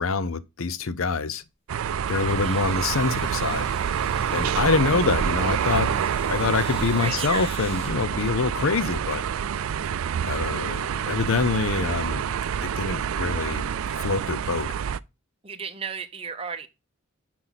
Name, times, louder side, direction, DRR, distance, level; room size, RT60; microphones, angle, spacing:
voice 1, 0.0-1.4 2.1-3.7 4.3-6.0 6.3-9.3 10.2-12.3 12.6-13.7 14.0-14.7, left 4 dB, 80° left, 0.6 m, -25 dB
sound 1, 1.5-1.6 2.4-7.9, left 3 dB, 50° left, 2.7 m, -45 dB
sound 2, 1.7-15.0, right 8 dB, 85° right, 0.4 m, -27 dB
voice 2, 2.3-2.7 7.0-7.5 15.4-16.7, right 6 dB, 25° right, 0.8 m, -34 dB
9.7 x 4.6 x 4.0 m
head